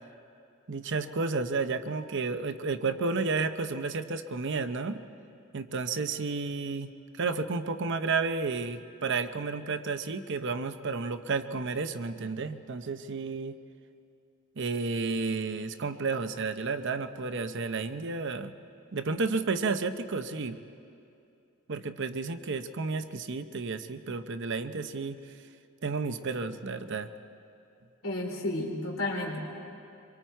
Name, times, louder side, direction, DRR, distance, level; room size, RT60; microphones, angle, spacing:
voice 1, 0.7-5.0 5.5-13.6 14.6-18.5 18.9-20.6 21.7-25.2 25.8-27.1, right 4 dB, 55° right, 9 dB, 0.7 m, -32 dB
voice 2, 28.0-29.4, left 2 dB, 65° left, 0 dB, 3.4 m, -32 dB
25.0 x 23.0 x 4.6 m, 2.6 s
head